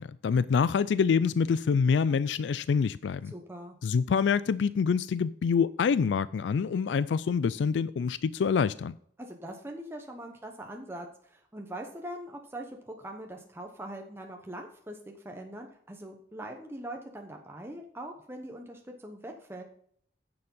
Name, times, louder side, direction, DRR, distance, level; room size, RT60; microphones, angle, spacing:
voice 1, 0.0-3.3 3.8-9.0, left 6 dB, 90° left, 0.3 m, -26 dB
voice 2, 3.2-3.8 9.2-15.0 15.2-19.6, right 1 dB, 15° right, 0.9 m, -42 dB
9.7 x 7.0 x 5.4 m
head